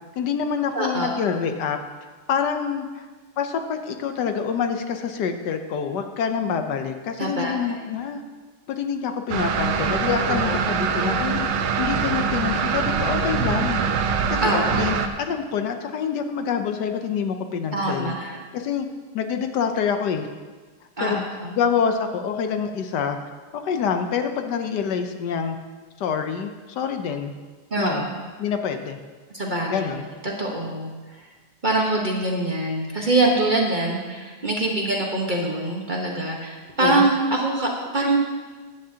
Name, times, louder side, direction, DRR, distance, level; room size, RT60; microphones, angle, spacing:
voice 1, 0.2-1.8 2.3-3.1 3.4-8.2 8.7-11.5 11.8-13.8 14.3-18.1 18.5-18.9 19.1-20.3 21.0-21.2 21.5-23.2 23.5-25.6 26.0-27.3 27.8-28.1 28.4-29.0 29.7-30.1 36.8-37.1, left 7 dB, 75° left, 7 dB, 1.3 m, -26 dB
voice 2, 0.7-1.2 7.2-7.5 10.3-10.6 14.4-14.9 17.7-18.4 21.0-21.6 27.7-28.1 29.3-29.9 30.2-30.9 31.6-38.2, right 2 dB, 30° right, -1 dB, 1.2 m, -24 dB
sound 1, 9.3-15.1, right 6 dB, 90° right, 1.4 m, -23 dB
14.0 x 10.5 x 2.8 m, 1.4 s
omnidirectional pair, 1.9 m